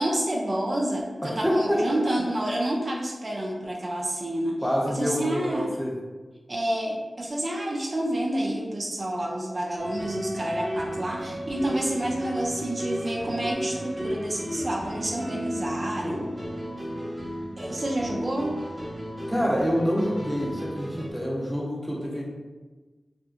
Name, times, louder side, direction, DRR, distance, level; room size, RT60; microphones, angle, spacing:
voice 1, 0.0-4.6 5.0-5.7 6.5-16.2 17.6-18.5, right 1 dB, 55° right, -2 dB, 0.4 m, -29 dB
voice 2, 1.2-1.8 4.6-5.9 16.0-16.3 19.3-22.2, equal, ahead, -4 dB, 0.7 m, -27 dB
sound 1, 9.8-21.1, equal, 40° right, 0.9 m, -33 dB
2.7 x 2.4 x 2.4 m, 1.3 s
cardioid pair, 45°, 0 cm